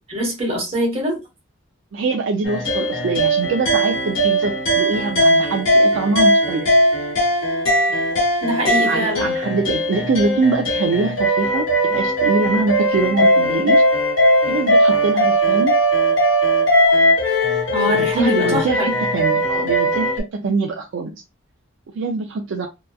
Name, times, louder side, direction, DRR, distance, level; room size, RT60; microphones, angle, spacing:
voice 1, 0.1-1.2 8.1-9.3 17.7-18.9, right 1 dB, 30° right, 1.2 m, -23 dB
voice 2, 1.9-6.7 8.9-13.8 14.5-15.7 17.9-21.2 21.9-22.7, right 4 dB, 70° right, 0.4 m, -23 dB
sound 1, 2.5-20.2, equal, 75° left, 1.0 m, -18 dB
2.8 x 2.2 x 2.3 m
head